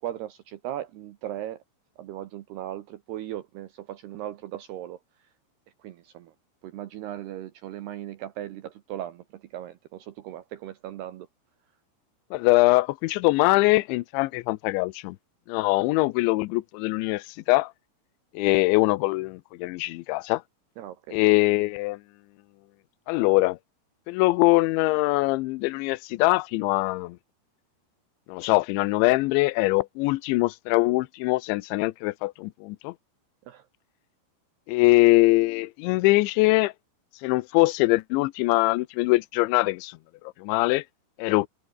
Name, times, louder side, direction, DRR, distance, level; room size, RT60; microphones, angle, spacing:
voice 1, 0.0-1.6 2.0-5.0 5.8-6.3 6.6-11.3 20.8-21.2 33.5-33.7, right 12 dB, 70° right, 2.8 m, -37 dB
voice 2, 12.3-15.2 15.5-17.7 18.3-20.4 21.1-22.0 23.1-23.6 24.1-27.2 28.3-32.9 34.7-36.7 37.2-40.0 40.4-40.8 41.2-41.5, left 21 dB, 80° left, 2.9 m, -22 dB
omnidirectional pair, 5.7 m